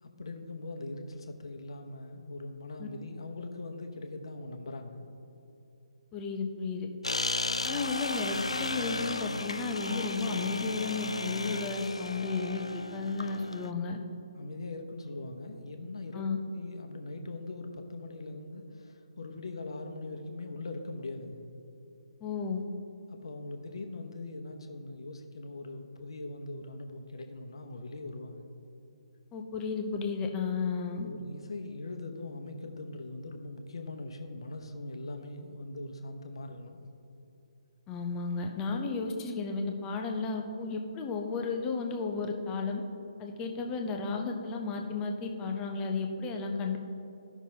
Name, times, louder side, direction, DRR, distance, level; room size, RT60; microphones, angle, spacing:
voice 1, 0.0-5.1 14.3-21.5 23.1-28.5 31.0-36.8, left 2 dB, 55° left, 5 dB, 0.9 m, -41 dB
voice 2, 6.1-6.9 7.6-14.0 16.1-16.4 22.2-22.6 29.3-31.1 37.9-42.8 43.2-46.8, left 4 dB, 15° left, 3 dB, 0.6 m, -33 dB
sound 1, 7.0-13.7, left 2 dB, 75° left, 0.4 m, -34 dB
14.5 x 5.9 x 2.8 m, 2.9 s
figure-of-eight pair, 140°, 3 cm